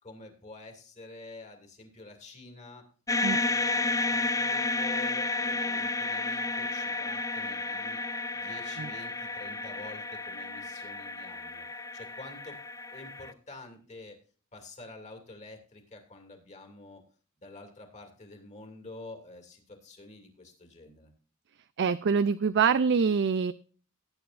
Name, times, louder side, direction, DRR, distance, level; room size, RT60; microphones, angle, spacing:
voice 1, 0.0-2.8 3.4-8.0 8.3-11.7 11.9-12.6 12.9-14.2 14.5-17.0 17.4-21.1, left 2 dB, 35° left, 4 dB, 2.7 m, -48 dB
sound 1, 3.1-13.3, left 3 dB, 15° left, 0.4 m, -32 dB
voice 2, 21.8-23.5, right 6 dB, 55° right, 13 dB, 0.4 m, -25 dB
18.0 x 8.9 x 2.5 m, 0.40 s
head